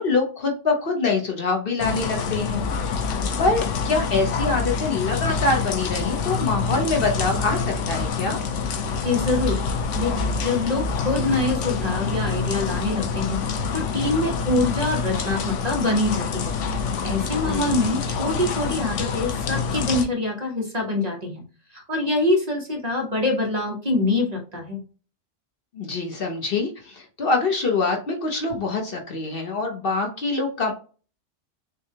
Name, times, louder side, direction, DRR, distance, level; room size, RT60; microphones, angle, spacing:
voice 1, 0.0-8.4 17.4-18.0 25.7-30.7, left 3 dB, 50° left, 2 dB, 1.0 m, -25 dB
sound 1, 1.8-20.1, left 5 dB, 80° left, 1.0 m, -26 dB
voice 2, 9.0-9.6 9.9-16.6 17.0-21.4 21.7-24.8, left 2 dB, 35° right, 1 dB, 1.1 m, -25 dB
6.3 x 2.3 x 2.8 m, 0.37 s
omnidirectional pair, 1.3 m